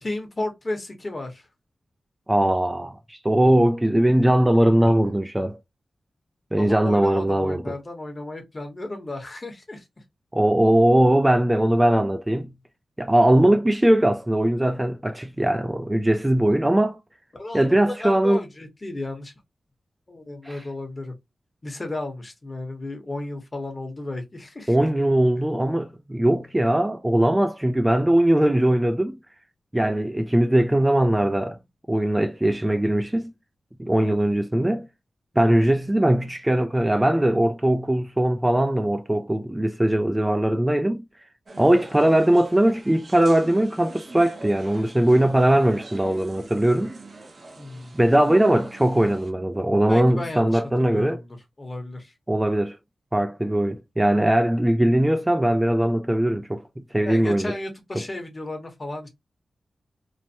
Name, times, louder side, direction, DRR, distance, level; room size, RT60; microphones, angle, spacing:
voice 1, 0.0-1.5 6.6-9.8 17.3-19.3 20.1-21.1 21.6-24.8 47.5-48.0 49.9-51.3 51.6-52.1 57.0-59.1, left 2 dB, 30° left, 1.0 m, -33 dB
voice 2, 2.3-5.6 6.5-7.7 10.3-12.5 13.0-17.0 17.5-18.4 20.4-20.6 24.7-29.2 29.7-31.6 31.9-33.3 33.8-34.9 35.4-41.0 41.6-46.9 47.9-51.2 52.3-52.8 53.1-56.6 56.9-57.5 58.0-58.1, right 1 dB, 15° right, 0.3 m, -20 dB
sound 1, 41.5-49.3, right 2 dB, 55° right, 0.7 m, -43 dB
3.1 x 2.1 x 2.6 m
wide cardioid pair, 95°, 0 cm